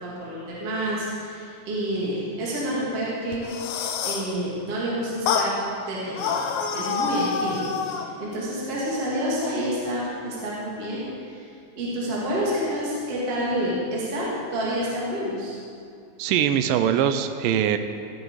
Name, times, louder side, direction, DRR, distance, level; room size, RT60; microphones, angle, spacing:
voice 1, 0.0-3.7 4.0-11.5 11.8-15.6, equal, 40° right, -7 dB, 3.1 m, -29 dB
sound 1, 3.3-4.3 5.3-5.5 6.2-8.1, left 6 dB, 80° left, 2.8 m, -27 dB
voice 2, 16.2-17.8, right 9 dB, 85° right, 9 dB, 1.9 m, -22 dB
16.5 x 11.0 x 4.8 m, 2.4 s
omnidirectional pair, 4.6 m